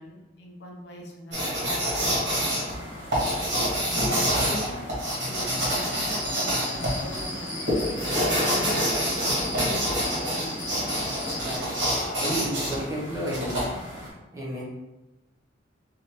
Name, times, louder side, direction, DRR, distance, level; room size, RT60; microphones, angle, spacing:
voice 1, 0.0-2.9 3.1-3.5 3.8-4.8 5.3-6.4 6.7-10.9, left 1 dB, 65° left, 0 dB, 0.6 m, -42 dB
sound 1, 1.3-14.1, equal, 85° right, 1.4 m, -27 dB
sound 2, 5.4-11.6, left 1 dB, 80° left, 1.0 m, -35 dB
sound 3, 6.2-7.6, right 5 dB, 50° right, 0.8 m, -42 dB
voice 2, 11.4-11.7 12.2-13.6 14.3-14.6, right 1 dB, 15° right, -5 dB, 0.7 m, -32 dB
3.1 x 2.6 x 2.9 m, 1.0 s
head